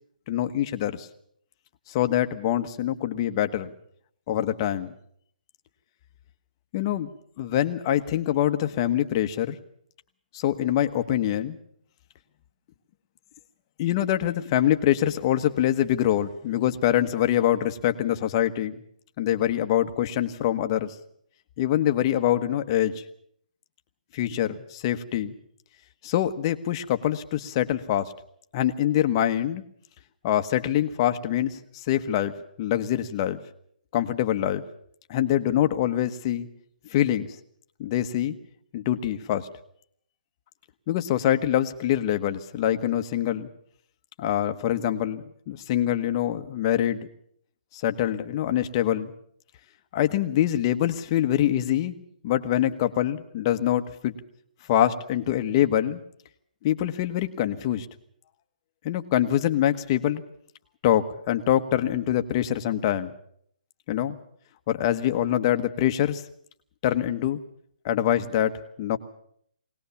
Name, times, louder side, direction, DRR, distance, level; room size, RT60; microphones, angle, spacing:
voice 1, 0.3-1.1 1.9-3.7 4.3-4.9 6.7-7.1 7.4-9.6 10.3-11.6 13.8-18.8 19.2-20.9 21.6-23.0 24.1-25.3 26.0-28.1 28.5-29.6 30.2-33.4 33.9-34.6 35.1-36.5 36.9-37.3 37.8-38.3 38.7-39.5 40.9-43.5 44.2-47.1 47.7-49.1 49.9-52.0 52.2-54.1 54.7-56.0 56.6-57.9 58.8-60.2 60.8-63.1 63.9-64.2 64.7-66.2 66.8-67.4 67.8-69.0, left 11 dB, 30° left, 9 dB, 1.3 m, -24 dB
22.0 x 19.0 x 7.1 m, 0.67 s
hypercardioid pair, 155°, 5 cm